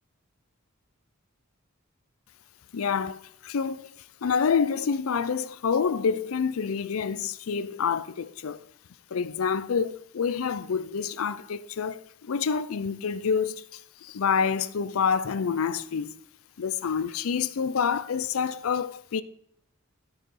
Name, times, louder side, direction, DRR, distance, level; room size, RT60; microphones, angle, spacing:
voice 1, 2.7-3.9 4.2-8.6 9.1-16.1 16.6-19.2, left 6 dB, 80° left, 0.5 m, -27 dB
12.5 x 4.9 x 4.6 m
head